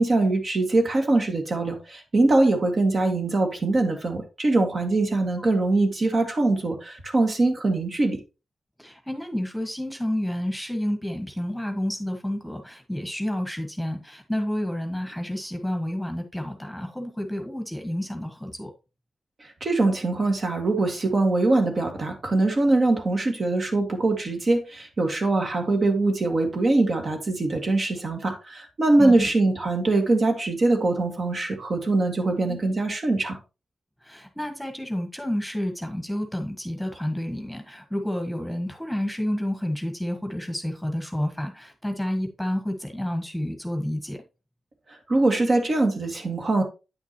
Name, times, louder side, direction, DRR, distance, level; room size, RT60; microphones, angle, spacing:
voice 1, 0.0-8.2 19.4-33.4 45.1-46.6, right 2 dB, 50° right, 1.7 m, -22 dB
voice 2, 8.8-18.7 29.0-29.3 32.5-32.6 34.0-44.2, left 1 dB, ahead, 1.4 m, -30 dB
9.1 x 5.9 x 2.9 m
cardioid pair, 80°, 0 cm